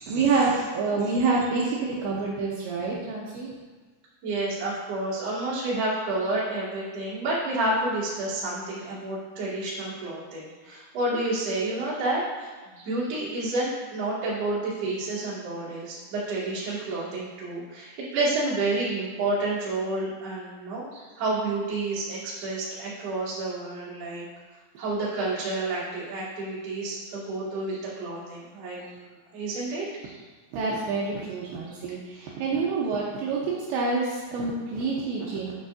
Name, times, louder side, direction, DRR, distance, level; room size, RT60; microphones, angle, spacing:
voice 1, 0.1-3.5 30.5-35.5, right 4 dB, 80° right, -4 dB, 2.8 m, -27 dB
voice 2, 4.2-24.2 24.8-30.2 32.1-32.3, right 2 dB, 45° right, -8 dB, 2.2 m, -30 dB
9.4 x 6.6 x 2.5 m, 1.3 s
omnidirectional pair, 5.7 m